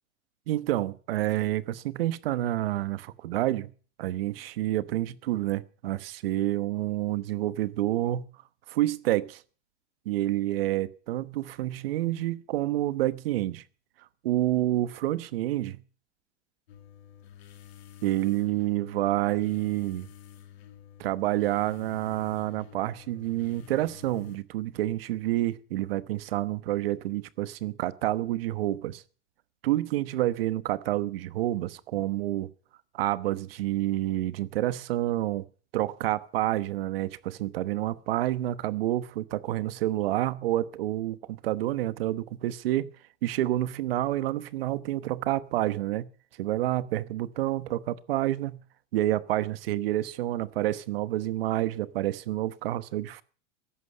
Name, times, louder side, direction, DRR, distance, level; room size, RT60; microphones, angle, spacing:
voice 1, 0.5-3.7 4.0-8.2 8.7-9.4 10.0-13.6 14.2-15.8 18.0-20.1 21.0-29.0 29.6-32.5 32.9-35.5 35.7-42.9 43.2-46.1 46.4-48.6 48.9-53.2, right 15 dB, 55° right, 1.1 m, -28 dB
sound 1, 16.7-24.4, left 11 dB, 65° left, 2.5 m, -50 dB
14.5 x 11.5 x 6.7 m
supercardioid pair, 175°, 35 cm